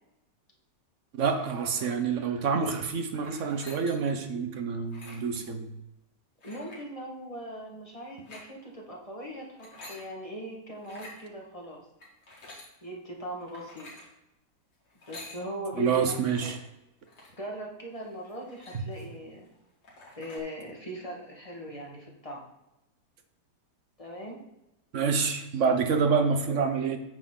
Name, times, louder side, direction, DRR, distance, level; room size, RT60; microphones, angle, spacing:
voice 1, 1.1-5.7 15.8-16.5 18.7-18.8 24.9-27.0, right 5 dB, 50° right, 7 dB, 1.1 m, -27 dB
sound 1, 3.2-4.2 4.8-5.4 6.4-6.9 8.1-8.5 9.4-10.0 10.8-11.2 12.0-12.7 13.4-14.1 14.9-15.4 16.1-16.6 17.1-17.4 18.0-18.1 18.3-19.2 19.5-19.6 19.8-20.4, left 2 dB, 70° left, 2.7 m, -48 dB
voice 2, 6.4-11.8 12.8-13.9 15.1-16.0 16.4-16.6 17.3-19.5 20.2-22.4 24.0-24.4, equal, 20° left, -2 dB, 1.7 m, -40 dB
9.1 x 6.7 x 3.9 m, 0.91 s
omnidirectional pair, 1.9 m